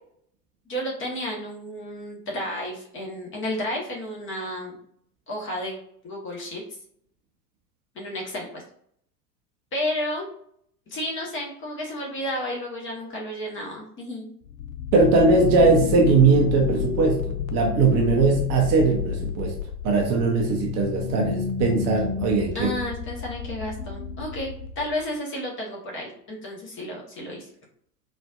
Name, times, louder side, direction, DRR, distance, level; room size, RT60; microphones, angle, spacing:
voice 1, 0.7-4.8 5.3-5.8 6.0-6.6 7.9-8.6 9.7-10.3 10.9-14.3 22.5-27.4, left 1 dB, 25° left, -1 dB, 1.1 m, -32 dB
sound 1, 14.5-25.1, left 7 dB, 60° left, 0.6 m, -30 dB
voice 2, 14.9-19.5 19.8-22.7, right 4 dB, 35° right, 0 dB, 0.7 m, -20 dB
4.1 x 2.5 x 2.4 m, 0.66 s
figure-of-eight pair, 85°, 47 cm